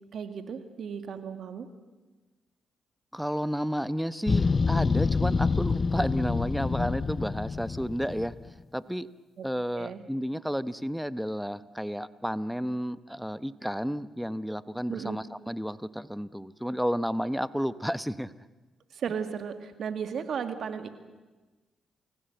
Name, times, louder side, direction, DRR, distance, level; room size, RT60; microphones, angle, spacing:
voice 1, 0.1-1.7 9.4-9.5 9.7-10.0 14.9-15.2 18.9-20.9, right 7 dB, 65° right, 8 dB, 2.1 m, -35 dB
voice 2, 3.1-8.3 8.7-9.1 9.4-18.3, equal, ahead, 15 dB, 0.9 m, -31 dB
sound 1, 4.3-8.5, left 4 dB, 40° left, 0.7 m, -27 dB
28.5 x 16.0 x 7.9 m, 1.2 s
supercardioid pair, 60°, 0 cm